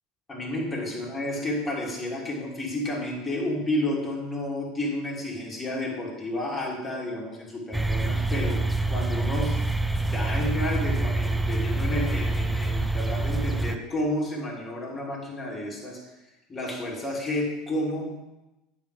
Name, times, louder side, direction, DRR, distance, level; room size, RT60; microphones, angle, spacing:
voice 1, 0.3-8.6 8.9-9.6 10.1-16.0 16.5-18.2, left 1 dB, 25° left, -2 dB, 2.8 m, -31 dB
sound 1, 7.7-13.8, right 2 dB, 5° right, 0.5 m, -26 dB
8.9 x 6.5 x 4.9 m, 1.0 s
figure-of-eight pair, 75°, 0 cm